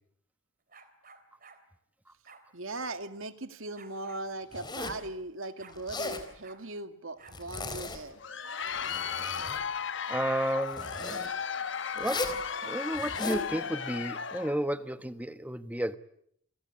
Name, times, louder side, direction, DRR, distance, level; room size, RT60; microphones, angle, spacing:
sound 1, 0.7-1.6 2.3-2.5 3.8-4.2 5.1-5.2 5.4-5.8 6.4-6.6 7.2-7.4 7.7-7.8 8.7-9.2 9.5-9.7 10.4-10.6 11.8-12.5, right 4 dB, 40° right, 3.4 m, -54 dB
voice 1, 2.5-8.2, right 2 dB, 80° right, 2.0 m, -39 dB
Zipper (clothing), 4.5-5.1 5.7-6.3 7.3-8.2 8.6-9.6 10.7-11.3 12.0-12.4 12.9-13.5, left 2 dB, 20° left, 3.8 m, -37 dB
Crowd, 8.0-14.6, left 6 dB, 60° left, 1.1 m, -35 dB
voice 2, 10.1-10.9 11.9-16.0, right 1 dB, 5° right, 1.1 m, -32 dB
29.5 x 23.0 x 8.6 m
head